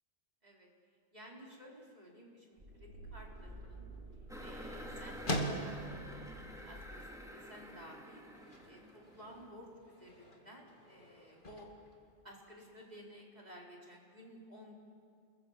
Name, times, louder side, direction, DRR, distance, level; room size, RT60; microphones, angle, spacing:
voice 1, 1.1-3.9 4.4-6.2 6.5-11.7 12.2-14.7, equal, 35° right, -2 dB, 4.6 m, -55 dB
sound 1, 2.6-7.5, right 2 dB, 60° right, 5.0 m, -51 dB
sound 2, 3.2-13.0, equal, 45° left, 2.6 m, -45 dB
sound 3, 4.3-9.6, equal, 5° right, 2.7 m, -49 dB
29.5 x 20.5 x 7.5 m, 2.3 s
omnidirectional pair, 1.2 m